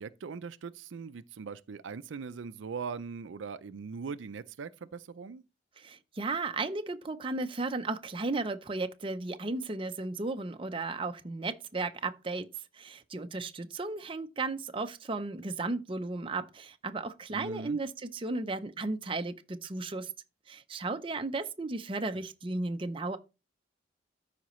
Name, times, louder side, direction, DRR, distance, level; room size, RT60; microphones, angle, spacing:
voice 1, 0.0-5.4 17.3-17.8 22.1-22.2, right 5 dB, 85° right, 0.5 m, -40 dB
voice 2, 5.8-12.5 12.7-20.1 20.5-23.2, right 3 dB, 30° right, 0.6 m, -35 dB
13.0 x 5.0 x 3.1 m
head